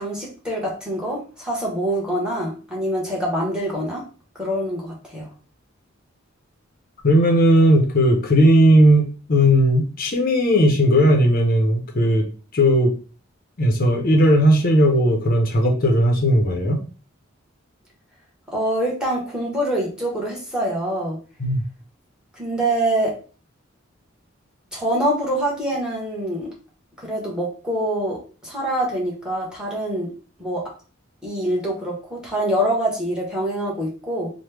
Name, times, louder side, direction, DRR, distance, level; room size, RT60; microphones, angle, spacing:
voice 1, 0.0-4.0 4.3-5.3 18.5-21.2 22.3-23.1 24.7-26.5 27.0-30.1 30.4-30.6 31.2-34.3, right 1 dB, 5° right, -3 dB, 1.0 m, -25 dB
voice 2, 7.0-12.3 12.5-12.9 13.6-16.8 21.4-21.6, equal, 45° left, 2 dB, 0.6 m, -16 dB
3.0 x 2.1 x 3.3 m, 0.37 s
head